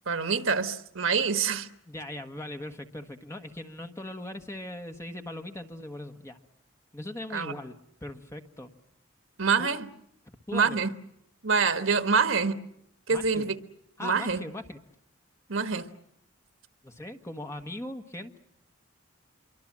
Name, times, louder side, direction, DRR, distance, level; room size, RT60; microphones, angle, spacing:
voice 1, 0.1-1.7 7.3-7.5 9.4-9.9 10.5-10.9 11.4-12.6 13.1-13.6 14.0-14.4 15.5-15.9, right 5 dB, 75° right, 9 dB, 1.4 m, -26 dB
voice 2, 1.9-6.4 6.9-8.7 9.6-9.7 10.5-10.8 13.1-13.5 14.0-14.8 16.8-18.4, left 1 dB, 15° left, 6 dB, 1.4 m, -39 dB
27.0 x 24.0 x 7.5 m, 0.77 s
head